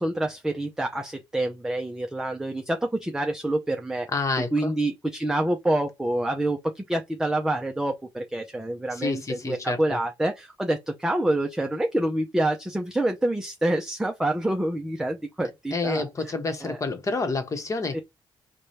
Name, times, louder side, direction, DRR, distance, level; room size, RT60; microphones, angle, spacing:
voice 1, 0.0-4.1 4.5-16.0 16.6-16.8 17.9-18.0, right 1 dB, 5° right, 0.6 m, -27 dB
voice 2, 4.1-4.7 8.9-10.0 15.7-18.0, left 3 dB, 35° left, 1.1 m, -28 dB
4.8 x 2.3 x 4.2 m
cardioid pair, 120°, 10 cm